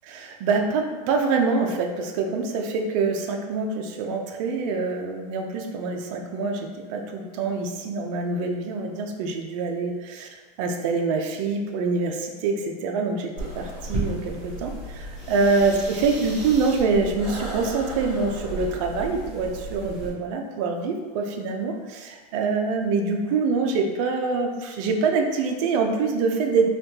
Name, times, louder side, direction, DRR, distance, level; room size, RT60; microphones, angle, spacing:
voice 1, 0.1-10.3 10.6-26.7, right 4 dB, 50° right, 3 dB, 0.6 m, -25 dB
sound 1, 13.4-20.1, right 1 dB, 25° right, 1.4 m, -34 dB
4.1 x 3.0 x 2.8 m, 1.4 s
supercardioid pair, 160°, 21 cm